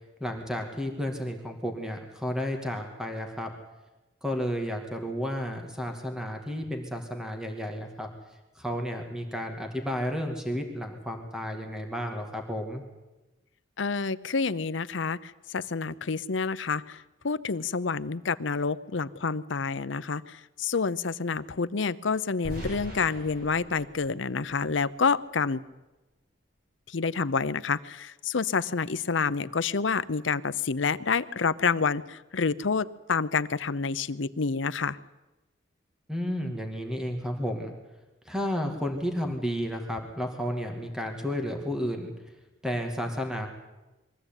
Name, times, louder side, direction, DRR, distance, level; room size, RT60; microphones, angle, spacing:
voice 1, 0.2-3.5 4.2-8.1 8.6-12.8 36.1-37.7 38.3-42.1 42.6-43.5, equal, 5° right, 3 dB, 2.4 m, -32 dB
voice 2, 13.8-25.6 26.9-35.0, left 5 dB, 80° left, 15 dB, 0.7 m, -28 dB
sound 1, 22.4-25.4, equal, 50° right, 6.4 m, -42 dB
22.5 x 15.0 x 9.0 m, 1.1 s
head